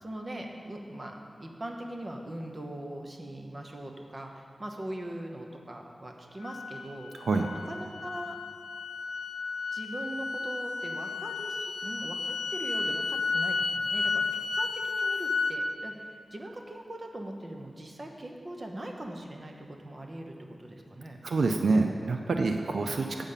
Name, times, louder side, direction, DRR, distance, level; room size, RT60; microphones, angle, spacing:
voice 1, 0.0-7.1 7.7-8.4 9.7-21.2, right 1 dB, 35° right, 2 dB, 0.9 m, -41 dB
sound 1, 6.4-15.6, left 4 dB, 65° left, 0.6 m, -32 dB
voice 2, 7.2-7.5 21.2-23.2, right 3 dB, 80° right, 4 dB, 0.4 m, -27 dB
8.2 x 5.3 x 7.3 m, 2.2 s
wide cardioid pair, 110°, 0 cm